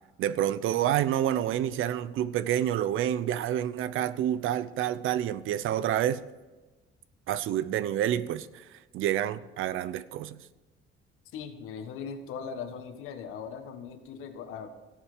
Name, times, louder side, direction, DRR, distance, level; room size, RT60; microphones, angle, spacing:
voice 1, 0.2-6.2 7.3-8.6 8.9-10.4, right 11 dB, 70° right, 0.7 m, -28 dB
voice 2, 11.3-14.8, left 6 dB, 90° left, 1.6 m, -39 dB
17.0 x 7.4 x 5.1 m
cardioid pair, 145°, 21 cm